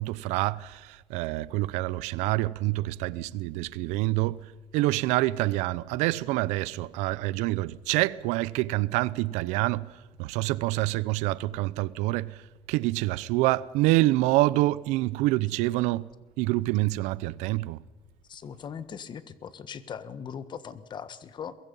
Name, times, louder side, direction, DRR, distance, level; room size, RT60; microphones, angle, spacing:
voice 1, 0.0-4.4 4.7-9.9 10.2-12.4 12.7-16.1 16.4-17.8, right 18 dB, 90° right, 0.6 m, -26 dB
voice 2, 18.3-21.5, left 7 dB, 40° left, 1.4 m, -40 dB
23.0 x 21.5 x 5.5 m
cardioid pair, 120°, 12 cm